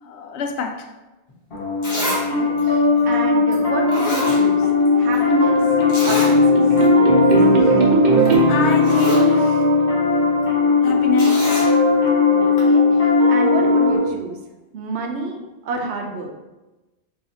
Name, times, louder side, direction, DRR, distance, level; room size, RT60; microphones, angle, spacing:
voice 1, 0.0-0.9 7.6-7.7 8.5-9.6 10.8-11.5, left 5 dB, 75° left, 4 dB, 0.8 m, -25 dB
Zipper (clothing), 1.3-1.4 1.8-2.2 2.6-2.7 3.5-3.6 3.9-4.9 5.1-5.2 5.9-6.3 6.8-6.9 7.2-7.4 8.3-8.4 8.7-9.3 11.2-11.7 12.6-12.7, equal, 35° left, 1.6 m, -27 dB
Piano, 1.5-14.0, left 4 dB, 55° left, 1.5 m, -17 dB
voice 2, 1.8-4.7 5.0-5.6 6.0-6.6 12.3-14.4 14.7-16.4, right 3 dB, 75° right, 2 dB, 1.0 m, -29 dB
sound 1, 4.8-10.4, right 2 dB, 50° right, 0.7 m, -20 dB
4.0 x 3.9 x 2.9 m, 1.1 s
omnidirectional pair, 1.1 m